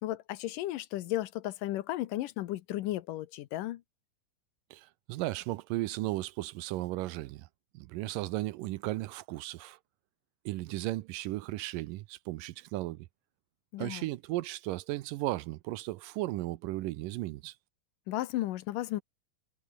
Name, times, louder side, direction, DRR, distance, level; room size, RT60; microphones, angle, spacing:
voice 1, 0.0-3.8 13.7-14.1 18.1-19.0, left 15 dB, 75° left, 2.3 m, -34 dB
voice 2, 4.7-7.5 7.7-9.8 10.5-13.1 13.8-17.6, right 17 dB, 80° right, 2.2 m, -35 dB
omnidirectional pair, 4.1 m